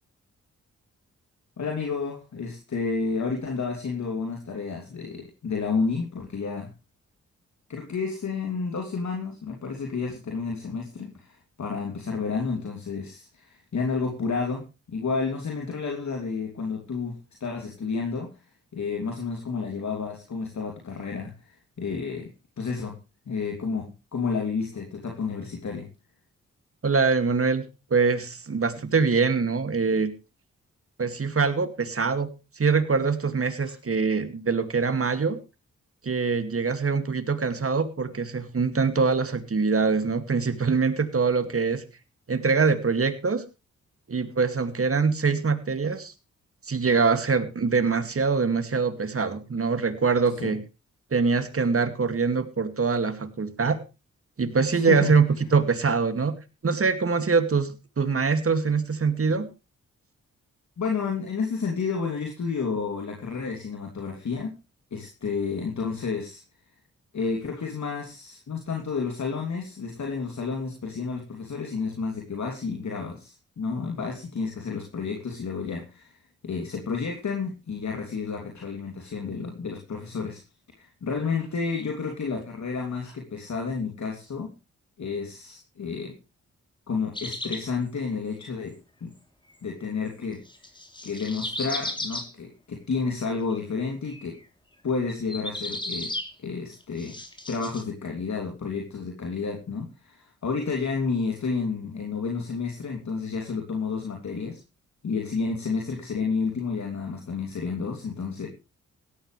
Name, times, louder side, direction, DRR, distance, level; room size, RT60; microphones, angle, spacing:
voice 1, 1.6-6.7 7.7-18.3 18.7-22.3 22.6-23.0 23.3-25.9 50.4-50.6 54.7-55.1 60.8-64.5 64.9-66.4 67.1-76.2 76.4-80.4 80.8-84.5 85.0-86.2 86.9-88.7 89.0-89.1 89.6-90.4 91.0-94.4 94.8-96.1 96.4-97.1 97.5-104.6 105.0-108.5, left 5 dB, 65° left, 1 dB, 3.1 m, -31 dB
voice 2, 26.8-30.1 31.0-32.3 32.6-35.4 36.0-41.8 42.3-43.4 44.1-46.1 46.6-50.6 51.1-53.8 54.4-56.4 56.6-59.5, right 5 dB, 45° right, 10 dB, 2.4 m, -24 dB
sound 1, 87.1-87.6 90.5-92.3 93.3-93.6 94.1-94.4 95.1-96.3 96.7-97.8, left 1 dB, 15° left, 3.3 m, -34 dB
17.0 x 13.0 x 3.3 m, 0.29 s
supercardioid pair, 50°, 31 cm